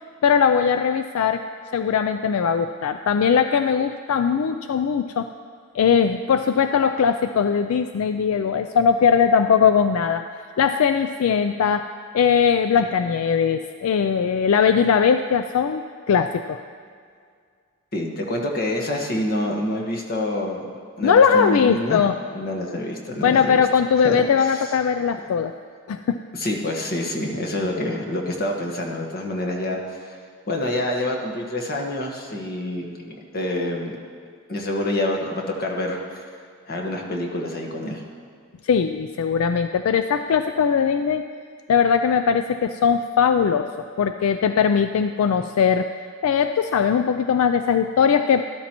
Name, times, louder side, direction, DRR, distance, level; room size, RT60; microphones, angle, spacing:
voice 1, 0.2-1.4 1.7-5.3 5.7-10.2 10.6-11.9 12.1-15.8 16.1-16.6 21.0-22.2 23.2-25.5 25.9-26.2 38.6-41.2 41.7-43.7 44.0-45.9 46.2-48.5, left 6 dB, 75° left, 9 dB, 0.3 m, -20 dB
voice 2, 17.9-20.6 21.0-22.0 22.3-23.6 24.0-24.6 26.3-29.8 30.1-30.2 30.5-34.0 34.5-36.2 36.6-38.0, left 1 dB, 45° left, 0 dB, 1.3 m, -27 dB
13.0 x 12.5 x 3.0 m, 2.1 s
head